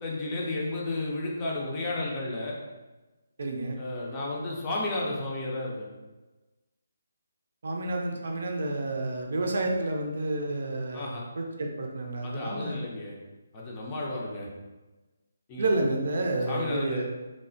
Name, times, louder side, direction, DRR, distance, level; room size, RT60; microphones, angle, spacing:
voice 1, 0.0-2.6 3.8-5.9 10.9-11.3 12.2-13.1 13.5-14.5 15.5-15.7 16.5-17.0, left 2 dB, 25° left, -3 dB, 0.6 m, -32 dB
voice 2, 3.4-3.8 7.6-11.1 11.4-12.8 15.6-17.0, right 2 dB, 60° right, 2 dB, 0.4 m, -30 dB
3.1 x 2.0 x 2.6 m, 1.2 s
figure-of-eight pair, 145°, 0 cm